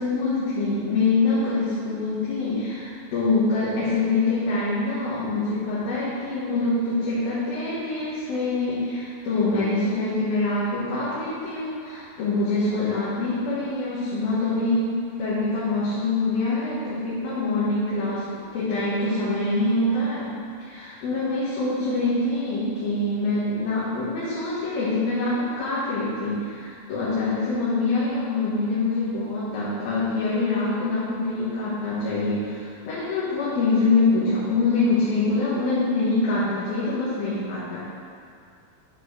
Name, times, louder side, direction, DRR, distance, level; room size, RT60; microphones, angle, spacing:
voice 1, 0.0-18.3 18.5-37.8, left 3 dB, 90° left, -10 dB, 3.3 m, -25 dB
7.4 x 5.1 x 6.4 m, 2.3 s
omnidirectional pair, 4.1 m